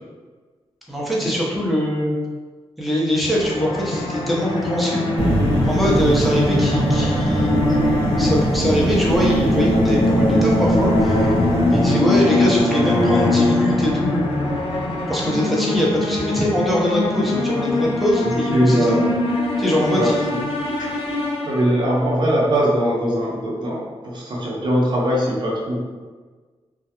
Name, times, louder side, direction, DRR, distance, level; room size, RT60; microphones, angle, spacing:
voice 1, 0.9-2.2 2.8-5.1 5.6-11.3 11.7-14.6 15.1-19.0 19.6-20.4, equal, ahead, -5 dB, 0.6 m, -22 dB
sound 1, 3.3-22.0, left 2 dB, 65° left, 0.5 m, -22 dB
sound 2, 5.2-11.9, right 1 dB, 85° right, 0.8 m, -22 dB
voice 2, 11.7-12.1 18.5-19.1 19.9-20.4 21.5-25.8, equal, 45° right, -4 dB, 0.6 m, -21 dB
2.3 x 2.1 x 2.8 m, 1.4 s
cardioid pair, 80°, 10 cm